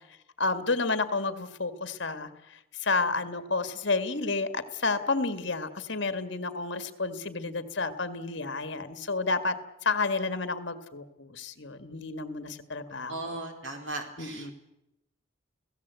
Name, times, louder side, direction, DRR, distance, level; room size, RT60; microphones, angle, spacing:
voice 1, 0.4-2.3 2.8-13.2 14.2-14.5, left 3 dB, 60° left, 11 dB, 1.8 m, -30 dB
voice 2, 13.1-14.5, right 2 dB, 70° right, 4 dB, 4.3 m, -37 dB
30.0 x 17.5 x 8.2 m, 0.92 s
head